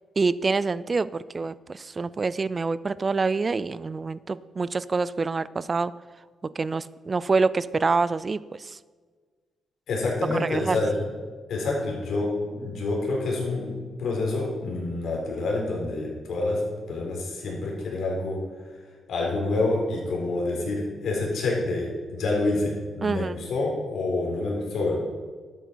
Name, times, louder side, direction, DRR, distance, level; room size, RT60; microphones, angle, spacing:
voice 1, 0.2-5.9 6.6-8.8 10.4-10.8 23.0-23.4, right 4 dB, 30° right, 18 dB, 0.3 m, -26 dB
voice 2, 9.9-10.9 11.5-13.7 14.0-16.6 16.9-18.4 19.1-25.0, left 2 dB, 75° left, -2 dB, 3.8 m, -27 dB
12.0 x 8.9 x 4.6 m, 1.5 s
cardioid pair, 110°, 0 cm